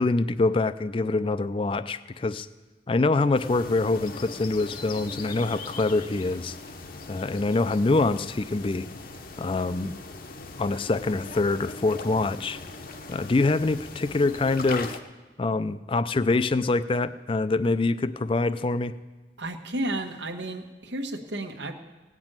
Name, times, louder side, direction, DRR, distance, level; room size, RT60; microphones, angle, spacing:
voice 1, 0.0-2.5 2.9-6.6 7.1-8.9 9.4-9.9 10.6-12.6 13.1-15.0 15.4-18.9, left 3 dB, 30° left, 14 dB, 0.4 m, -25 dB
sound 1, 3.3-15.0, left 3 dB, 55° left, 0.9 m, -40 dB
voice 2, 19.4-21.7, right 1 dB, 90° right, 5 dB, 1.2 m, -32 dB
17.5 x 6.1 x 8.8 m, 1.3 s
head